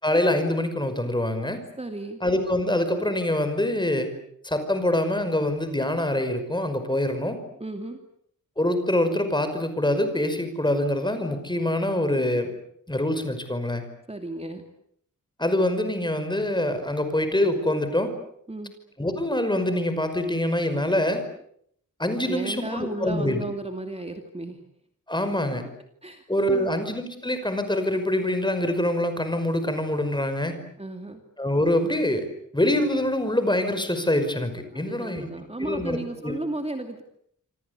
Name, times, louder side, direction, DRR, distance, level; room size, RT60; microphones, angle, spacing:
voice 1, 0.0-1.6 2.2-4.1 4.4-7.4 8.6-12.5 12.9-13.9 15.4-18.1 19.0-21.2 22.0-23.4 25.1-25.6 26.3-30.6 31.4-32.3 32.5-35.3 35.6-36.3, left 1 dB, 15° left, 8 dB, 5.5 m, -25 dB
voice 2, 1.8-2.2 7.6-8.0 14.1-14.6 18.5-18.7 22.3-24.6 26.0-26.7 30.8-31.2 34.7-37.0, right 2 dB, 20° right, 5 dB, 2.6 m, -34 dB
27.0 x 26.5 x 8.3 m, 0.69 s
wide cardioid pair, 120°, 32 cm